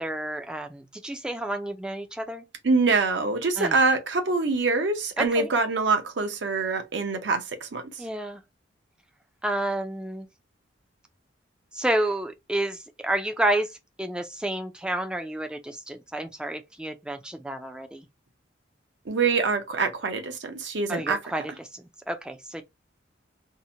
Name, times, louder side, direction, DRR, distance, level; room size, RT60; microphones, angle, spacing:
voice 1, 0.0-2.4 3.6-3.8 5.2-5.5 8.0-8.4 9.4-10.3 11.7-13.7 14.0-18.1 20.9-22.6, right 1 dB, 5° right, 0.3 m, -30 dB
voice 2, 2.6-7.9 19.1-21.4, right 3 dB, 65° right, 0.6 m, -25 dB
2.7 x 2.1 x 2.6 m
head